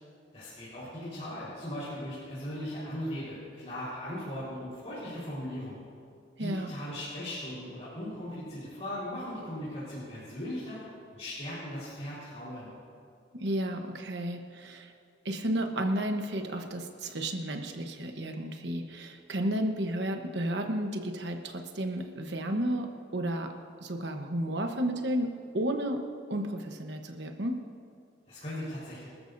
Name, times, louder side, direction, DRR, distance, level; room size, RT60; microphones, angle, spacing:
voice 1, 0.3-5.8 6.4-10.8 11.1-12.7 28.3-29.1, left 1 dB, 35° left, -10 dB, 4.4 m, -38 dB
voice 2, 6.4-6.7 13.3-14.9 15.2-23.5 23.8-27.6, right 1 dB, 70° right, 4 dB, 1.1 m, -32 dB
25.5 x 13.5 x 2.7 m, 2.4 s
head